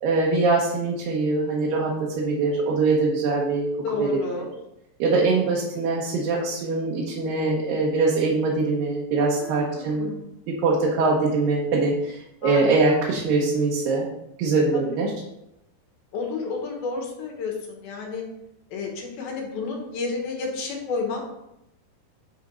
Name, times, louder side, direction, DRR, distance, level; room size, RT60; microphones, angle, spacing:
voice 1, 0.0-3.7 4.0-4.1 4.4-4.5 5.0-10.1 10.5-14.1 14.4-15.1, right 3 dB, 70° right, -3 dB, 2.6 m, -23 dB
voice 2, 3.8-4.5 9.4-10.2 12.4-12.6 14.7-14.8 16.1-18.2 18.7-21.2, left 4 dB, 75° left, 0 dB, 3.2 m, -31 dB
9.7 x 4.5 x 5.1 m, 0.85 s
omnidirectional pair, 4.4 m